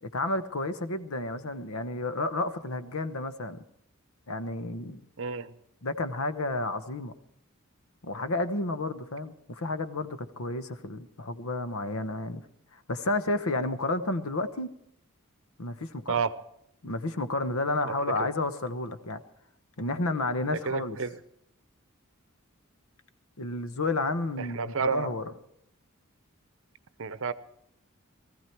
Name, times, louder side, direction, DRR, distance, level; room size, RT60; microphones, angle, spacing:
voice 1, 0.0-3.6 4.3-5.0 5.8-7.1 8.0-12.4 12.7-14.7 15.6-16.2 16.8-19.2 19.8-21.0 23.4-25.3, left 2 dB, 75° left, 11 dB, 1.1 m, -31 dB
voice 2, 5.2-5.5 16.1-16.3 17.8-17.9 18.2-18.3 20.7-21.1 24.4-25.1 27.0-27.3, right 5 dB, 60° right, 15 dB, 0.7 m, -30 dB
19.5 x 15.0 x 4.6 m, 0.76 s
head